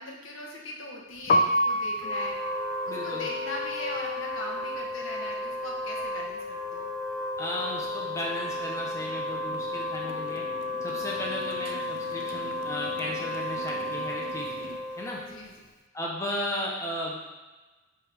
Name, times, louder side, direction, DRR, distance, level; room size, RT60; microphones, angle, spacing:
voice 1, 0.0-2.4 2.8-6.9 14.9-15.0 15.3-15.7, left 2 dB, 80° left, -1 dB, 1.2 m, -39 dB
Piano, 1.2-7.1 7.4-9.0 9.2-15.7, equal, 45° left, 0.4 m, -32 dB
Wind instrument woodwind instrument, 2.0-15.4, left 2 dB, 25° right, 1.6 m, -33 dB
voice 2, 2.9-3.3 7.4-10.5 10.8-14.7 15.0-15.2 15.9-17.2, left 1 dB, 15° left, -3 dB, 1.0 m, -35 dB
Motorcycle, 7.6-14.8, right 4 dB, 65° right, 0.5 m, -47 dB
9.2 x 3.7 x 3.5 m, 1.2 s
head